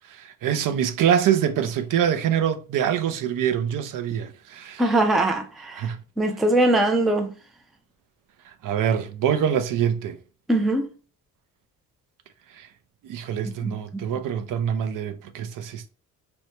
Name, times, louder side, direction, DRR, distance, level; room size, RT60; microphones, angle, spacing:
voice 1, 0.2-4.8 5.8-6.0 8.6-10.2 12.6-12.7 13.0-15.9, right 9 dB, 65° right, 0.5 m, -24 dB
voice 2, 4.8-7.3 10.5-10.9 13.6-14.1, right 1 dB, ahead, 0.3 m, -22 dB
4.4 x 2.2 x 2.7 m
cardioid pair, 145°, 35 cm